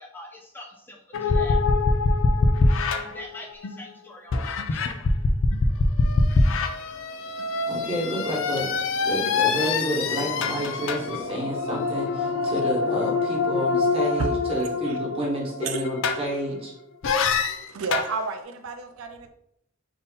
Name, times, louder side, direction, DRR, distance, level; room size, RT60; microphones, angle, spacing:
voice 1, 0.0-1.6 2.9-5.1, left 1 dB, 10° left, 0.4 m, -44 dB
sound 1, 1.1-3.8 4.3-16.6 17.0-18.1, left 3 dB, 65° left, 0.5 m, -24 dB
voice 2, 7.7-8.7 9.0-16.7, equal, 30° right, 1.3 m, -30 dB
voice 3, 14.2-15.0 15.6-15.8 17.7-19.3, right 3 dB, 80° right, 0.4 m, -32 dB
4.0 x 2.7 x 3.7 m
head